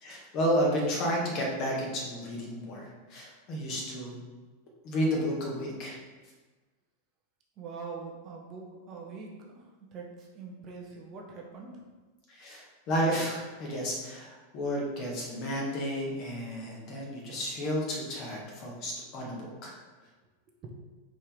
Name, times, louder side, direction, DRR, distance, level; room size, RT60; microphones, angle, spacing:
voice 1, 0.0-4.2 4.8-6.0 12.3-19.7, equal, 40° left, -2 dB, 1.9 m, -32 dB
voice 2, 7.6-11.9 20.6-20.7, right 4 dB, 30° right, -1 dB, 1.1 m, -44 dB
4.9 x 4.4 x 5.4 m, 1.3 s
figure-of-eight pair, 90°, 0 cm